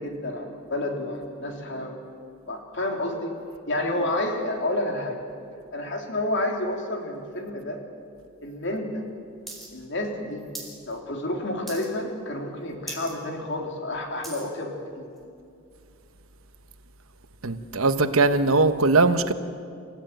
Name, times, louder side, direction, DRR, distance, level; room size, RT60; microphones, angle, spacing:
voice 1, 0.0-1.9 2.5-3.3 3.7-5.2 5.7-7.8 8.4-9.0 9.7-10.4 10.9-15.1, left 1 dB, 60° left, 3.6 m, -30 dB
sound 1, 9.5-9.7 9.9-10.8 11.1-11.4 11.7-12.1 12.5-12.6 12.8-13.1 13.6-14.5 15.2-15.3, right 2 dB, ahead, 4.6 m, -39 dB
voice 2, 17.4-19.3, right 3 dB, 85° right, 1.2 m, -20 dB
27.5 x 15.5 x 9.1 m
head